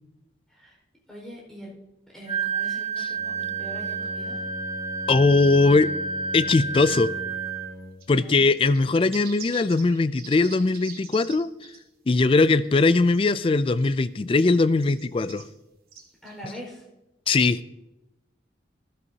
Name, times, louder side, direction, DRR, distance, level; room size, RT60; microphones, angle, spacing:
voice 1, 0.5-0.8 1.1-1.7 2.1-4.4 8.1-8.4 16.2-16.9, equal, 5° left, -4 dB, 4.7 m, -42 dB
Wind instrument woodwind instrument, 2.3-7.7, right 4 dB, 30° right, 2.0 m, -30 dB
Bowed string instrument, 3.1-8.2, equal, 50° left, 5.2 m, -40 dB
voice 2, 5.1-5.9 6.3-7.1 8.1-11.5 12.1-15.4 17.3-17.6, left 3 dB, 30° left, 15 dB, 0.3 m, -20 dB
sound 1, 8.0-11.4 11.6-11.8 12.3-13.2 13.5-14.0 14.8-15.4 15.9-16.6, right 6 dB, 50° right, 1.9 m, -44 dB
15.0 x 12.5 x 2.8 m, 0.93 s
head